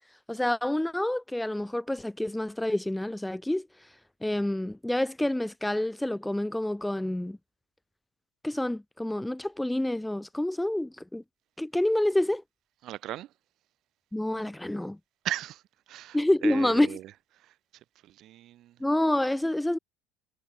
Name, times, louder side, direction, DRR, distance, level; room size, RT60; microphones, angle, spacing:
voice 1, 0.3-3.9 4.2-7.4 8.4-11.2 11.6-12.4 14.1-15.0 16.1-17.0 18.8-19.8, left 1 dB, 5° left, 0.6 m, -28 dB
voice 2, 12.8-13.3 15.2-15.6 15.9-16.2 16.4-17.0 18.2-18.7, right 13 dB, 50° right, 1.1 m, -36 dB
figure-of-eight pair, 60°, 0 cm